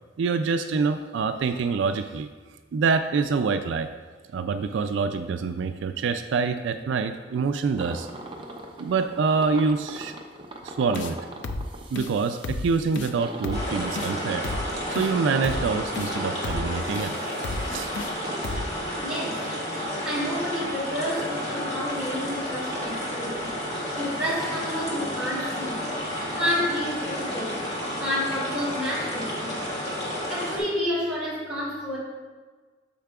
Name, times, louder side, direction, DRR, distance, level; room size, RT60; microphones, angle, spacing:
voice 1, 0.2-2.3 2.7-3.9 4.3-8.1 8.8-10.2 10.6-11.2 11.9-14.5 14.9-17.1 17.7-17.9, right 5 dB, 75° right, 8 dB, 0.3 m, -26 dB
sound 1, 7.8-18.4, right 2 dB, 25° right, 0.6 m, -40 dB
sound 2, 10.9-11.1 11.4-11.7 11.9-12.1 12.4-12.7 12.9-13.1 13.4-13.7 13.9-14.1 14.4-14.7 14.9-15.1 15.4-15.7 15.9-16.1 16.4-16.7 16.9-17.1 17.4-17.7 17.9-18.1 18.4-18.7, left 3 dB, 75° left, 0.5 m, -32 dB
sound 3, 13.5-30.6, equal, 35° left, 1.7 m, -31 dB
voice 2, 19.0-19.4 20.1-23.6 24.0-25.9 26.3-29.5 30.3-32.0, equal, 5° right, -7 dB, 2.1 m, -30 dB
8.3 x 6.5 x 2.3 m, 1.4 s
head